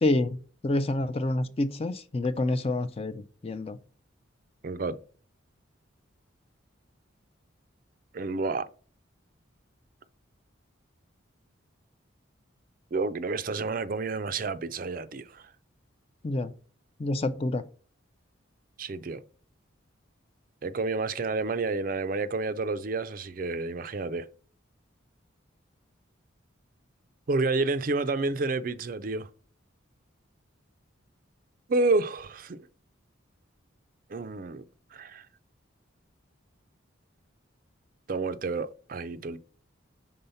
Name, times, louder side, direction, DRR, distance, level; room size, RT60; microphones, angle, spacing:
voice 1, 0.0-3.8 16.2-16.5 17.0-17.6, left 2 dB, 30° left, 0.4 m, -28 dB
voice 2, 4.6-5.0 8.1-8.7 12.9-15.5 18.8-19.2 20.6-24.3 27.3-29.3 31.7-32.6 34.1-34.6 34.9-35.3 38.1-39.4, right 3 dB, 40° right, 0.4 m, -29 dB
5.5 x 3.8 x 5.5 m
head